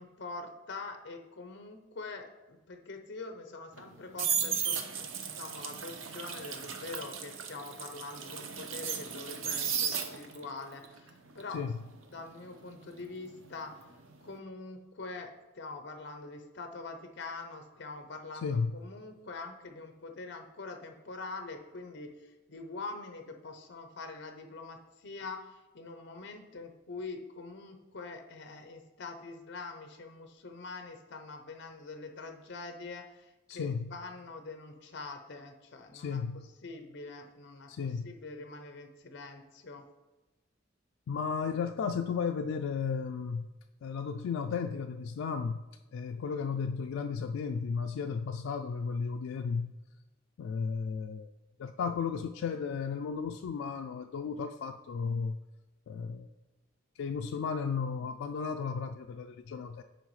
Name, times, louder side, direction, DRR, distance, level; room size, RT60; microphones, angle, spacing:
voice 1, 0.0-11.6 12.1-13.9 14.2-39.8, left 3 dB, 60° left, 6 dB, 0.7 m, -44 dB
sound 1, 3.7-10.5 10.8-13.7 14.0-14.3, right 7 dB, 90° right, 0.7 m, -35 dB
voice 2, 18.4-18.7 33.5-33.9 35.9-36.5 37.7-38.1 41.1-43.5 43.8-45.6 45.9-49.7 50.4-51.3 51.6-55.4 55.9-56.3 57.0-59.8, left 5 dB, 85° left, 5 dB, 0.3 m, -34 dB
9.1 x 4.7 x 3.2 m, 1.1 s
head